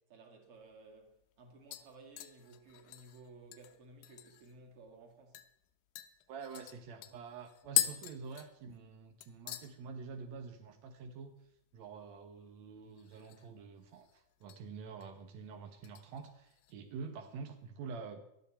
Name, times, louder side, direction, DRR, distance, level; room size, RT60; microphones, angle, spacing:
voice 1, 0.1-5.4, right 3 dB, 40° right, 2.5 m, -56 dB
sound 1, 0.6-0.7 1.1-1.4 1.7-4.5 4.9-5.0 5.3-5.5 6.0-9.0 9.2-9.7 10.1-10.5 10.7-10.8 12.9-13.6 13.9-14.6 15.0-15.3 15.8-16.8 17.1-17.2, left 14 dB, 85° left, 2.9 m, -40 dB
voice 2, 6.3-11.3 11.7-18.2, right 5 dB, 80° right, 1.6 m, -47 dB
18.5 x 12.0 x 4.3 m
omnidirectional pair, 4.7 m